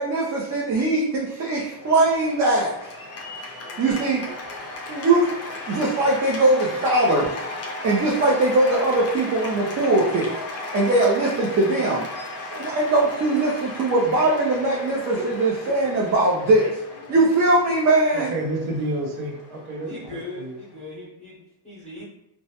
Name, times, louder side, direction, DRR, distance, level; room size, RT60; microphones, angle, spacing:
voice 1, 0.0-2.7 3.8-4.2 4.9-7.3 7.8-10.3 10.7-12.0 12.5-16.7 17.1-18.3, right 2 dB, 35° right, -4 dB, 0.4 m, -21 dB
Cheering / Applause, 1.5-20.8, left 2 dB, 35° left, 0.4 m, -36 dB
voice 2, 18.1-20.6, right 1 dB, 80° right, 1 dB, 0.7 m, -30 dB
voice 3, 19.8-22.0, left 2 dB, 15° left, -8 dB, 0.7 m, -38 dB
2.2 x 2.0 x 2.7 m, 0.81 s
cardioid pair, 115°, 49 cm